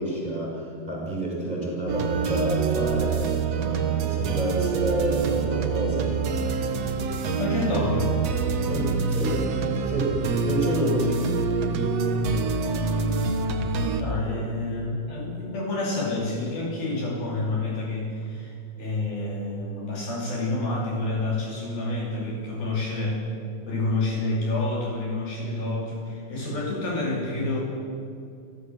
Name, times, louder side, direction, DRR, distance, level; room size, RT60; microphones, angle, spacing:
voice 1, 0.0-6.1 8.7-9.4 9.9-11.2 14.3-14.4, right 1 dB, 10° right, -4 dB, 6.2 m, -29 dB
sound 1, 1.9-14.0, right 4 dB, 80° right, 1.4 m, -26 dB
voice 2, 7.4-8.2 14.0-23.2 23.7-27.6, left 2 dB, 55° left, -2 dB, 4.4 m, -28 dB
28.5 x 15.0 x 7.8 m, 2.6 s
omnidirectional pair, 5.4 m